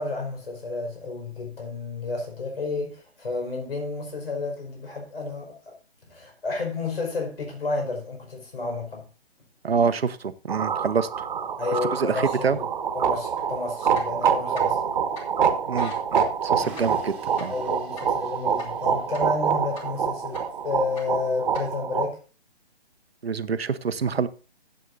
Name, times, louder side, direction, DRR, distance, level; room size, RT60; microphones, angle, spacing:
voice 1, 0.0-5.8 6.1-9.1 11.6-12.6 12.9-14.8 17.5-22.2, left 3 dB, 65° left, 5.1 m, -31 dB
voice 2, 9.6-11.3 12.0-12.6 15.7-17.5 23.2-24.3, right 5 dB, 70° right, 1.0 m, -26 dB
sound 1, 10.5-22.1, right 7 dB, 45° right, 1.5 m, -26 dB
sound 2, 13.4-13.5 13.8-14.9 15.1-15.3 15.6-19.4 19.7-20.6 20.9-21.6, left 3 dB, 30° left, 2.9 m, -43 dB
sound 3, 16.6-21.7, right 2 dB, 5° right, 2.3 m, -47 dB
15.0 x 8.2 x 2.6 m
figure-of-eight pair, 145°, 32 cm